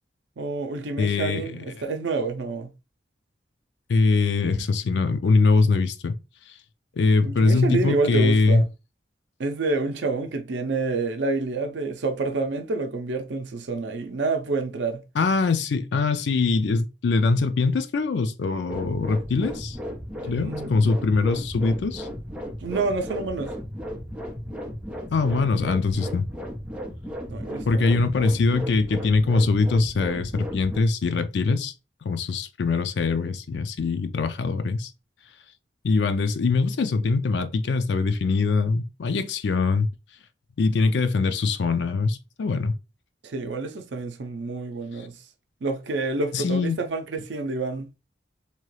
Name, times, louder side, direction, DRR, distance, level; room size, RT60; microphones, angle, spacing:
voice 1, 0.4-2.7 7.2-8.7 9.4-15.0 20.2-20.9 22.6-23.5 27.3-28.0 43.2-45.2 45.6-47.9, right 3 dB, 80° right, 0.5 m, -28 dB
voice 2, 1.0-1.4 3.9-6.2 7.0-8.6 15.2-19.8 20.2-22.1 25.1-26.3 27.7-31.7 32.1-34.9 35.8-39.9 40.6-42.7 46.3-46.8, left 3 dB, 75° left, 0.4 m, -22 dB
sound 1, 18.7-30.8, equal, 5° right, 0.8 m, -35 dB
2.9 x 2.3 x 3.1 m
head